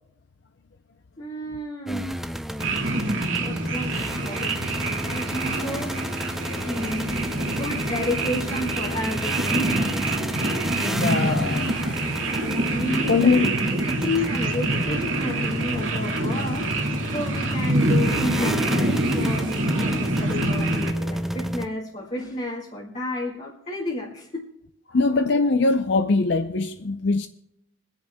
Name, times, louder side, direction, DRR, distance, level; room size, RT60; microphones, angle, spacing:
voice 1, 1.2-2.1 3.4-4.6 5.0-6.0 6.6-7.2 7.6-10.3 12.7-13.4 13.6-24.4, left 1 dB, 35° left, 1.9 m, -31 dB
sound 1, 1.9-21.7, equal, ahead, 0.4 m, -32 dB
sound 2, 2.6-20.9, right 2 dB, 80° right, 2.2 m, -26 dB
voice 2, 10.8-11.9 12.5-12.7 13.1-13.5 24.9-27.3, left 3 dB, 60° left, 0.5 m, -22 dB
26.5 x 10.5 x 2.2 m
head